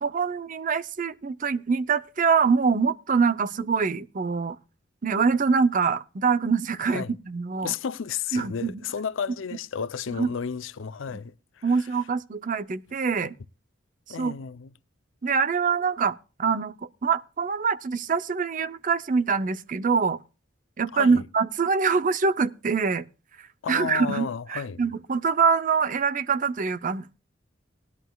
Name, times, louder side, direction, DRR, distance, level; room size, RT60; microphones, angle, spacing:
voice 1, 0.0-4.6 5.0-7.7 8.3-8.7 10.2-10.3 11.6-13.4 14.2-14.3 15.2-16.7 17.0-20.2 20.8-23.0 23.7-27.1, right 5 dB, 40° right, 0.6 m, -24 dB
voice 2, 7.6-11.9 14.1-14.7 20.9-21.3 23.6-24.8, left 7 dB, 85° left, 0.5 m, -32 dB
19.0 x 11.0 x 2.3 m
head